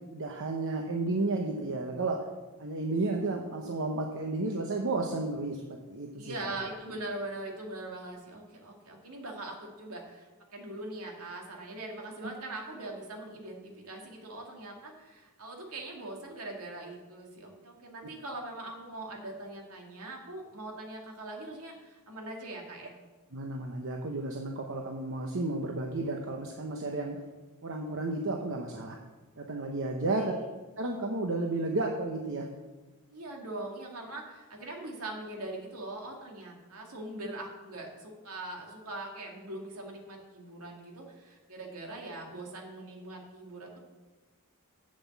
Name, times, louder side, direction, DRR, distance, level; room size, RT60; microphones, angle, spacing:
voice 1, 0.1-2.2 2.6-5.6 5.9-6.7 23.3-27.2 27.6-29.0 29.4-30.3 30.8-32.5, right 2 dB, 60° right, 2 dB, 0.9 m, -32 dB
voice 2, 6.2-22.9 30.1-30.5 33.1-43.8, right 2 dB, 75° right, 0 dB, 2.2 m, -42 dB
7.7 x 7.3 x 7.1 m, 1.2 s
head